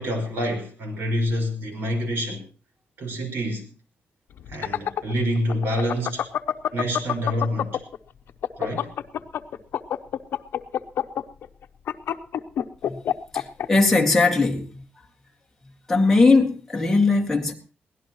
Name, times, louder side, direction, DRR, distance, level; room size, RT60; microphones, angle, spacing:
voice 1, 0.0-2.4 3.0-3.7 4.5-6.3 6.7-7.8 8.6-8.9, equal, 75° right, 5.3 m, -27 dB
sound 1, 4.4-8.0 8.3-13.7, left 10 dB, 75° left, 0.8 m, -26 dB
voice 2, 13.3-14.8 15.9-17.5, left 3 dB, 10° left, 2.1 m, -19 dB
23.0 x 17.0 x 3.1 m
wide cardioid pair, 175°, 4 cm